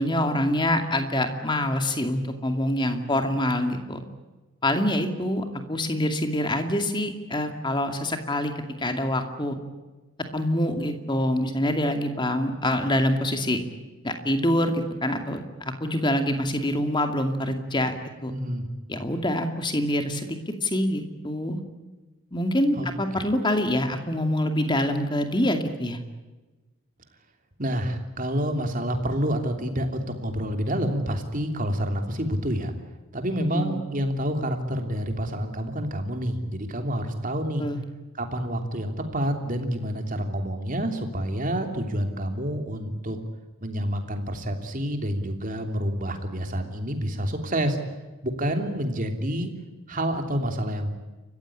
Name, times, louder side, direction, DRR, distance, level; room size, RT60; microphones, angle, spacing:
voice 1, 0.0-4.0 4.6-8.5 8.8-9.6 10.3-13.6 14.0-17.9 18.2-18.3 18.9-21.6 22.3-26.0 33.4-33.8 37.6-37.8, left 1 dB, 20° left, 6 dB, 2.4 m, -25 dB
voice 2, 18.3-18.7 22.7-22.9 23.1-23.2 27.6-32.7 33.1-37.7 38.2-43.2 43.6-47.8 48.2-49.5 49.9-50.9, equal, 35° right, 5 dB, 3.1 m, -28 dB
29.5 x 15.5 x 9.9 m, 1.2 s
head